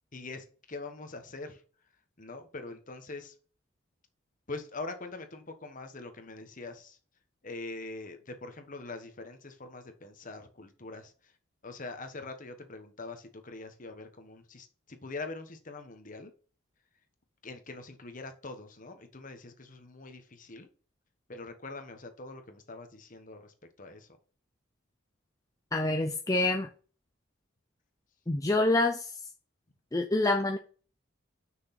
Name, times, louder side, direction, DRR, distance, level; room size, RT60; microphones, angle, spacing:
voice 1, 0.1-1.6 2.2-3.3 4.5-7.0 7.4-11.1 11.6-16.3 17.4-20.7 21.3-24.1, left 3 dB, 40° left, 1.3 m, -43 dB
voice 2, 25.7-26.7 28.3-29.2 29.9-30.6, left 2 dB, 15° left, 0.5 m, -27 dB
6.4 x 6.2 x 5.8 m
head